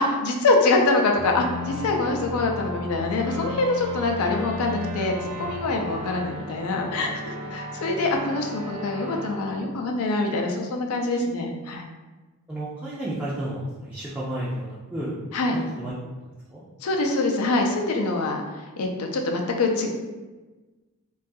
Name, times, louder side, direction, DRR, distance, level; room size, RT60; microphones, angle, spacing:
voice 1, 0.0-5.1 5.4-11.9 15.3-15.6 16.8-18.4 18.8-19.9, left 2 dB, 75° left, 2 dB, 0.4 m, -24 dB
sound 1, 1.1-10.5, left 1 dB, 85° right, 0.7 m, -35 dB
voice 2, 12.5-15.2 15.5-15.9 16.5-16.6, right 1 dB, 5° right, -9 dB, 0.3 m, -32 dB
2.3 x 2.3 x 2.6 m, 1.2 s
head